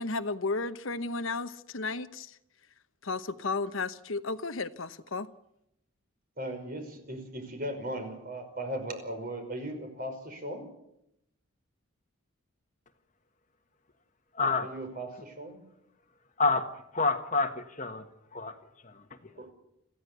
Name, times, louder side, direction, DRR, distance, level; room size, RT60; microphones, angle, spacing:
voice 1, 0.0-2.4 3.0-5.3, left 3 dB, 70° left, 1.0 m, -33 dB
voice 2, 6.4-10.7 14.4-15.6 19.4-19.5, right 1 dB, 40° right, 5.3 m, -38 dB
voice 3, 14.3-14.7 16.4-16.6 16.9-18.0 18.3-18.5 18.8-19.0, left 3 dB, 35° left, 1.5 m, -28 dB
26.5 x 15.5 x 8.3 m
head